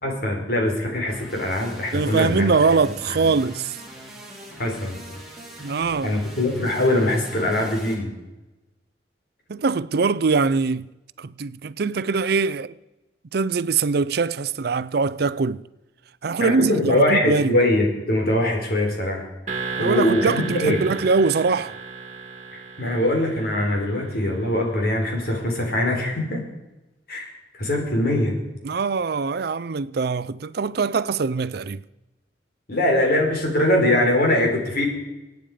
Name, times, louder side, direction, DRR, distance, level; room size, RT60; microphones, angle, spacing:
voice 1, 0.0-2.5 4.6-5.0 6.0-8.1 16.4-19.3 19.5-20.8 22.8-26.4 27.1-27.3 27.6-28.3 32.7-34.9, left 1 dB, 60° left, 4.3 m, -22 dB
sound 1, 1.1-7.9, equal, ahead, 4.3 m, -41 dB
voice 2, 1.9-3.8 5.6-6.2 9.5-10.9 11.2-12.7 13.3-15.6 16.2-17.6 19.8-21.8 28.6-31.8, right 4 dB, 60° right, 0.5 m, -22 dB
sound 2, 19.5-24.4, right 5 dB, 45° right, 2.2 m, -34 dB
24.5 x 9.3 x 5.0 m
head